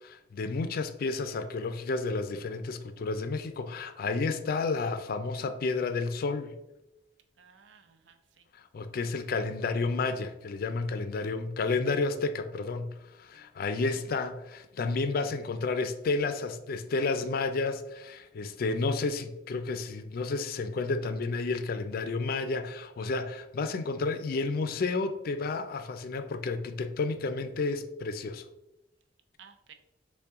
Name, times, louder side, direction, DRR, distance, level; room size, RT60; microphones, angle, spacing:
voice 1, 0.0-6.6 8.5-28.5, left 3 dB, 55° left, 9 dB, 0.4 m, -31 dB
voice 2, 7.4-8.5 13.3-13.5 29.4-29.7, right 7 dB, 80° right, 7 dB, 0.5 m, -56 dB
5.5 x 2.2 x 3.5 m, 0.93 s
head